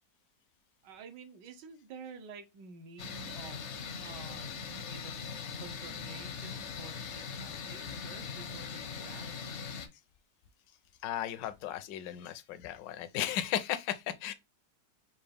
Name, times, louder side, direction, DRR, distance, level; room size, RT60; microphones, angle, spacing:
voice 1, 0.8-3.7 3.9-9.3, right 5 dB, 75° right, 1.4 m, -50 dB
sound 1, 3.0-9.9, left 6 dB, 60° left, 0.7 m, -41 dB
voice 2, 11.0-14.3, left 11 dB, 80° left, 1.3 m, -35 dB
5.5 x 2.4 x 3.3 m
omnidirectional pair, 1.9 m